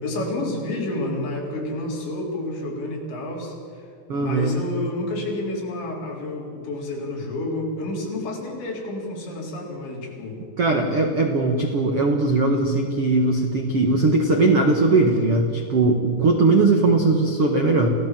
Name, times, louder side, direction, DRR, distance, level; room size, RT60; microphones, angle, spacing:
voice 1, 0.0-3.9 4.1-10.4, left 2 dB, 70° left, -1 dB, 6.3 m, -30 dB
voice 2, 4.1-4.5 10.6-17.9, right 3 dB, 85° right, 3 dB, 1.3 m, -19 dB
28.5 x 17.5 x 7.5 m, 2.3 s
omnidirectional pair, 5.3 m